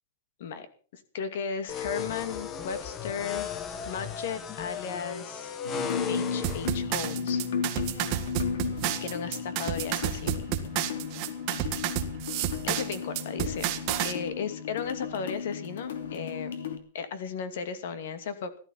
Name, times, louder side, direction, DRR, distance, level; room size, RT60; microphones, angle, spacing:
voice 1, 0.9-3.5 3.9-5.6 6.1-7.4 9.0-10.5 12.7-13.8 14.0-16.5 16.9-18.5, left 6 dB, 55° left, 11 dB, 2.4 m, -35 dB
sound 1, 1.7-6.7, left 7 dB, 20° left, 1.1 m, -35 dB
sound 2, 5.6-16.8, left 6 dB, 75° left, 2.8 m, -34 dB
sound 3, 6.4-14.1, right 12 dB, 30° right, 1.7 m, -31 dB
16.5 x 13.5 x 5.7 m, 0.39 s
supercardioid pair, 175°, 0 cm